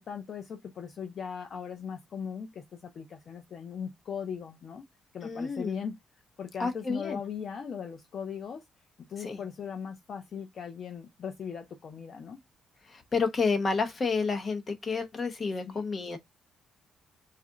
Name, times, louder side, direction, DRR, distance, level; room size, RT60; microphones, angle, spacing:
voice 1, 0.0-4.8 5.1-6.0 6.4-8.6 9.1-12.4 15.7-15.8, left 7 dB, 55° left, 0.6 m, -39 dB
voice 2, 5.2-5.8 6.6-7.2 9.2-9.4 12.9-16.2, left 4 dB, 40° left, 1.0 m, -30 dB
4.0 x 2.5 x 3.7 m
cardioid pair, 90°, 0 cm